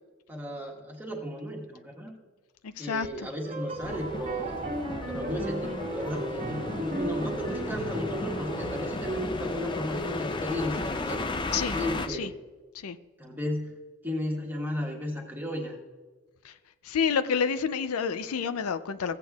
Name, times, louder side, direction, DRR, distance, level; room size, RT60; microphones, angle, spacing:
voice 1, 0.3-2.1 2.8-4.6 5.0-11.2 11.6-12.3 13.2-13.7 14.0-15.8, equal, 10° right, 0 dB, 1.3 m, -34 dB
voice 2, 2.6-3.3 11.5-12.3 12.7-13.0 16.4-16.5 16.8-19.2, left 6 dB, 80° left, 12 dB, 0.4 m, -29 dB
sound 1, 3.4-9.2, right 1 dB, 30° right, 1.1 m, -35 dB
sound 2, 3.8-12.1, left 2 dB, 20° left, 0.4 m, -34 dB
15.5 x 8.3 x 2.3 m, 1.3 s
head